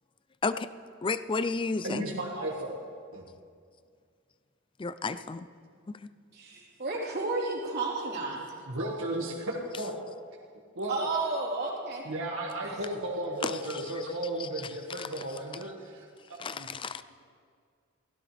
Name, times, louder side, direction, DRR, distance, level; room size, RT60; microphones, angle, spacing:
voice 1, 1.0-2.0 4.8-5.5 13.4-13.5 13.9-14.0 16.4-16.5 16.8-17.0, left 4 dB, 25° left, 13 dB, 0.4 m, -31 dB
voice 2, 1.8-2.7 3.1-3.3 8.7-9.9 10.8-11.1 12.0-16.1 16.5-16.7, right 1 dB, 80° right, -3 dB, 1.8 m, -34 dB
voice 3, 6.3-8.6 10.9-12.0 12.6-12.8, right 3 dB, 50° right, -4 dB, 3.8 m, -32 dB
23.0 x 16.5 x 3.4 m, 2.1 s
head